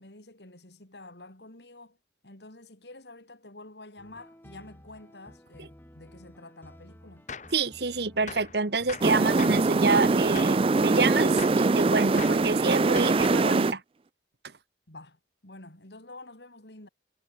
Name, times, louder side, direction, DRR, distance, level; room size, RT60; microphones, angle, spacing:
voice 1, 0.0-2.0 2.2-7.3 14.9-16.9, left 2 dB, 75° left, 4.7 m, -48 dB
sound 1, 4.0-13.4, equal, 10° left, 5.4 m, -53 dB
Gunshot gunfire, 7.3-7.6 8.3-8.6 8.9-9.7 10.4-10.7 11.4-11.7 12.2-12.5 13.0-13.5, left 5 dB, 40° left, 2.0 m, -40 dB
voice 2, 7.5-13.8, right 4 dB, 65° right, 1.4 m, -27 dB
sound 2, 9.0-13.7, right 3 dB, 30° right, 0.4 m, -23 dB
head